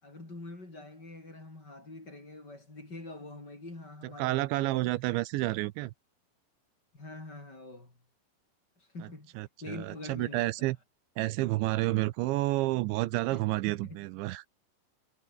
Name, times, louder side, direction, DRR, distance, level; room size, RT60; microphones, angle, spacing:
voice 1, 0.0-5.0 6.9-8.0 8.8-9.3 9.6-10.7 13.3-14.0, left 2 dB, 20° left, 5.8 m, -45 dB
voice 2, 4.2-5.9 9.4-10.8 11.2-14.5, right 18 dB, 85° right, 3.1 m, -30 dB
omnidirectional pair, 5.3 m